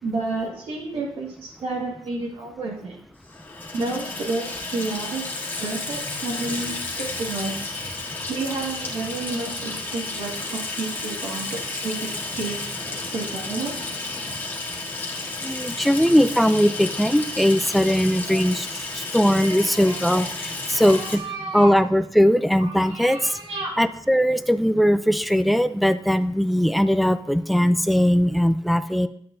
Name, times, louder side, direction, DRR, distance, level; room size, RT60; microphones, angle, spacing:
voice 1, 0.0-2.9 3.7-5.2 5.6-7.6 8.3-13.7 15.2-15.3 18.3-18.6 19.4-20.2 20.7-21.7 22.6-23.7, right 3 dB, 90° right, -2 dB, 1.9 m, -31 dB
Water tap faucet / Sink (filling or washing), 3.3-21.2, left 2 dB, 25° left, 1.6 m, -32 dB
voice 2, 15.4-18.7 19.1-20.3 20.7-21.2 21.5-23.2 23.8-29.1, equal, ahead, 12 dB, 0.3 m, -19 dB
10.5 x 7.6 x 2.6 m, 0.67 s
wide cardioid pair, 155°, 9 cm